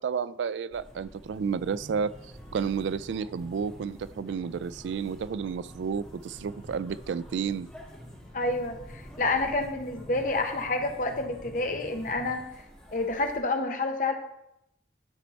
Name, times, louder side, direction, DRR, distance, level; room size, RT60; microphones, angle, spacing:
voice 1, 0.0-2.1 2.5-7.7, right 6 dB, 80° right, 0.3 m, -31 dB
sound 1, 0.7-13.4, equal, 5° left, 1.6 m, -50 dB
sound 2, 1.4-12.4, equal, 35° right, 2.0 m, -49 dB
voice 2, 8.3-12.4 12.9-14.1, left 2 dB, 45° left, 0.8 m, -29 dB
11.5 x 4.4 x 4.1 m
head